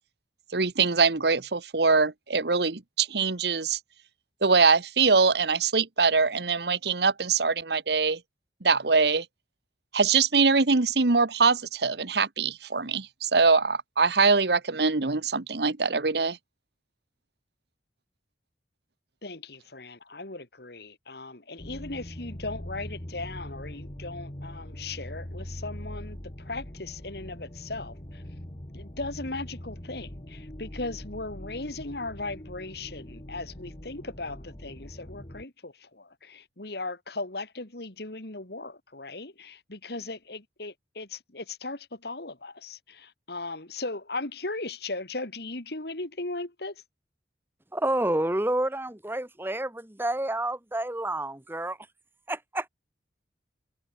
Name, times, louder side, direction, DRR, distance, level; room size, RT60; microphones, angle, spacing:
voice 1, 0.5-3.8 4.4-8.2 8.6-9.2 9.9-16.4, right 4 dB, 65° right, 1.2 m, -23 dB
voice 2, 19.2-26.2 26.5-28.2 28.7-46.7, left 2 dB, 60° left, 2.7 m, -37 dB
sound 1, 21.6-35.4, equal, 30° left, 2.1 m, -42 dB
voice 3, 47.7-51.8 52.3-52.7, right 1 dB, 10° right, 1.2 m, -29 dB
head